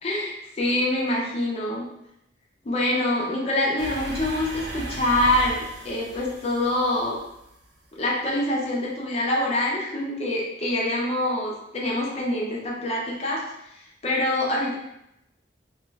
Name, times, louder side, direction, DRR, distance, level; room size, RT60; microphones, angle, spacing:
voice 1, 0.0-1.9 2.6-7.2 7.9-13.4 13.7-14.7, left 1 dB, 35° left, -2 dB, 0.5 m, -25 dB
sound 1, 3.8-7.7, right 1 dB, 75° right, 0.5 m, -36 dB
2.4 x 2.3 x 3.1 m, 0.83 s
head